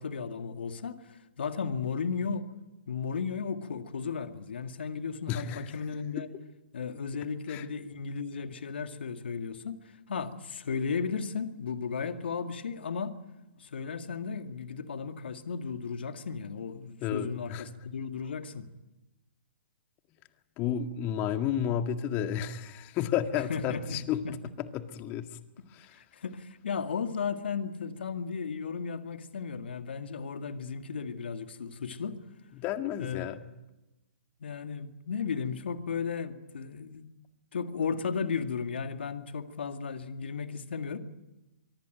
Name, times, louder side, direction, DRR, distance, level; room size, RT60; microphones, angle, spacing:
voice 1, 0.0-2.5 2.9-6.3 6.7-13.2 13.6-18.7 23.5-24.3 25.9-32.2 33.0-33.3 34.4-37.1 37.5-41.0, left 5 dB, 70° left, 2.1 m, -35 dB
voice 2, 5.3-5.6 7.5-7.6 17.0-17.6 20.6-24.4 24.7-25.3 25.7-25.9 32.6-33.4, left 9 dB, 30° left, 2.0 m, -31 dB
24.0 x 23.5 x 9.2 m
hypercardioid pair, 125°, 6 cm